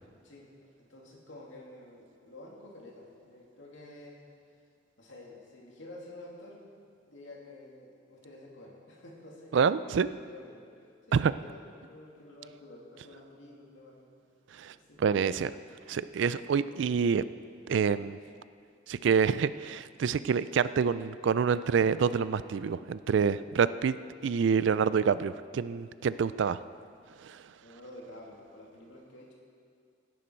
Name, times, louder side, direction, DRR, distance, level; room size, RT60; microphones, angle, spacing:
voice 1, 0.2-4.2 5.0-10.7 11.1-14.0 14.7-15.4 27.6-29.3, left 1 dB, 70° left, -2 dB, 2.5 m, -50 dB
voice 2, 9.5-10.1 11.1-11.3 14.5-15.5 15.9-17.2 17.7-18.2 18.9-24.0 24.2-26.6 27.2-27.4, right 6 dB, 65° right, 15 dB, 0.3 m, -27 dB
16.5 x 10.0 x 4.5 m, 2.3 s
head